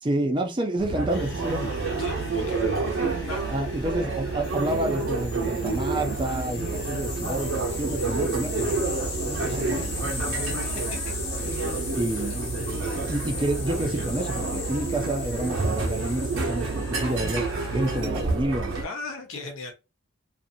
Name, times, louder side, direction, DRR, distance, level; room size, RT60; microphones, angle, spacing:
voice 1, 0.0-1.7 3.5-7.5 7.8-8.8 9.2-10.7 11.4-12.7 12.9-18.8, right 1 dB, 20° right, 0.4 m, -29 dB
sound 1, 0.8-18.8, right 3 dB, 75° right, 0.9 m, -29 dB
sound 2, 1.1-18.0, left 4 dB, 50° left, 0.7 m, -38 dB
voice 2, 2.0-2.6 3.2-3.4 6.7-7.0 10.7-11.6 18.8-19.7, left 3 dB, 80° left, 0.9 m, -38 dB
2.5 x 2.5 x 2.7 m
head